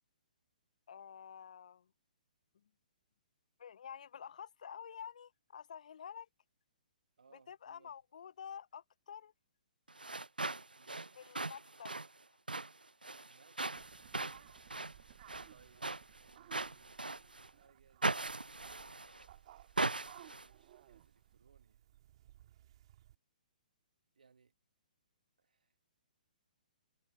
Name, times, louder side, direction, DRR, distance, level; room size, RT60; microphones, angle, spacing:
voice 1, 0.9-1.9 3.6-6.3 7.5-9.3 11.1-11.9, left 8 dB, 55° left, 1.0 m, -49 dB
voice 2, 7.2-7.9 10.7-11.2 13.2-14.4 15.5-18.3 19.7-21.9 24.2-24.5 25.4-25.7, right 5 dB, 70° right, 1.8 m, -68 dB
sound 1, 9.9-17.5 18.0-19.3 19.8-20.5, right 2 dB, 90° right, 0.5 m, -40 dB
sound 2, 13.7-23.2, right 13 dB, 45° right, 2.2 m, -60 dB
figure-of-eight pair, 125°, 5 cm